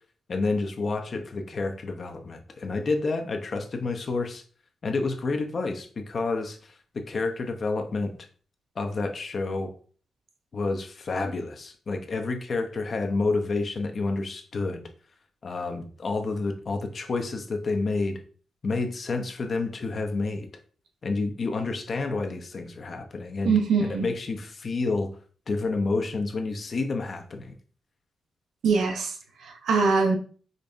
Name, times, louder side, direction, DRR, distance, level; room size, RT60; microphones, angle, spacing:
voice 1, 0.3-4.4 4.8-8.1 8.8-9.7 10.5-14.8 15.4-18.2 18.6-20.5 21.0-25.1 25.5-27.5, left 3 dB, 50° left, 5 dB, 0.6 m, -29 dB
voice 2, 23.4-24.1 28.6-29.1 29.4-30.2, right 4 dB, 90° right, 3 dB, 0.6 m, -23 dB
5.1 x 2.2 x 2.5 m, 0.42 s
cardioid pair, 95°, 0 cm